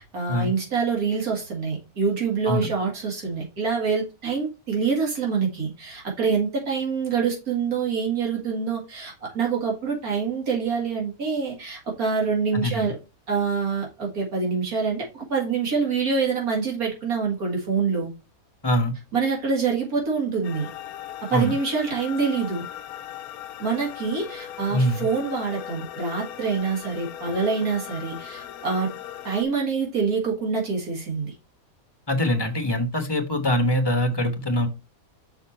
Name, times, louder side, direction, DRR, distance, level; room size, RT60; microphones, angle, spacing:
voice 1, 0.0-13.0 13.3-18.1 19.1-20.7 21.2-22.6 23.6-28.9 29.2-31.3, right 5 dB, 85° right, 2.4 m, -26 dB
voice 2, 12.5-12.9 18.6-18.9 21.3-21.5 24.7-25.0 32.1-34.7, left 1 dB, 20° left, 1.1 m, -23 dB
sound 1, 20.4-29.4, left 11 dB, 85° left, 1.0 m, -38 dB
5.9 x 4.0 x 4.3 m
omnidirectional pair, 1.5 m